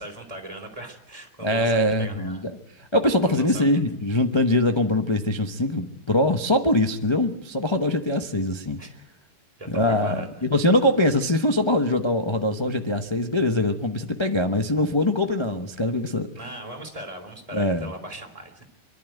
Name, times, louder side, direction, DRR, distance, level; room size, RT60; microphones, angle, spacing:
voice 1, 0.0-2.5 3.2-3.8 8.8-8.9 9.6-10.5 16.4-18.6, right 1 dB, 15° right, 3 dB, 3.4 m, -39 dB
voice 2, 1.4-2.5 2.8-8.8 9.7-16.3 17.5-17.9, left 1 dB, 30° left, 6 dB, 0.5 m, -23 dB
26.0 x 11.5 x 9.1 m, 0.80 s
omnidirectional pair, 2.4 m